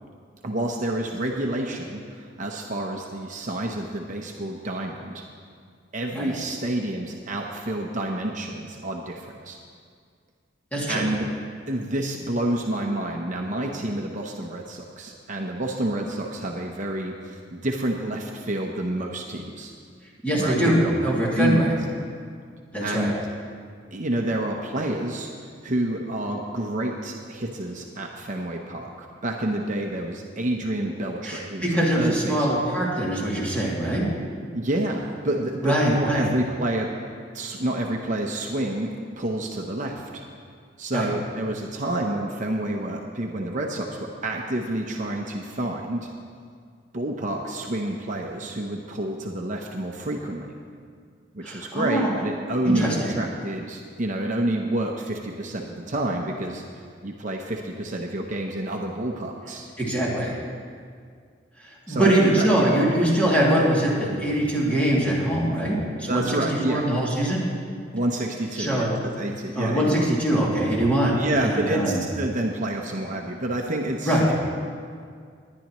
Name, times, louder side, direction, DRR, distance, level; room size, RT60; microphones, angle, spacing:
voice 1, 0.4-5.2 5.9-9.6 10.9-11.3 11.7-19.7 20.4-21.7 22.8-23.1 23.9-25.3 25.6-32.5 34.5-36.9 37.3-38.9 39.2-40.2 40.8-46.1 46.9-50.5 51.3-59.7 61.9-62.8 66.1-66.8 67.9-70.0 71.2-74.2, right 1 dB, 45° right, 1 dB, 0.8 m, -28 dB
voice 2, 10.7-11.1 20.2-21.7 22.7-23.1 31.2-34.1 35.6-36.3 40.9-41.1 51.4-52.1 52.6-53.0 59.8-60.4 61.9-66.4 66.7-67.5 68.6-68.9 69.5-72.0 74.0-74.3, right 1 dB, 10° left, -6 dB, 2.6 m, -23 dB
20.0 x 10.5 x 3.1 m, 2.1 s
head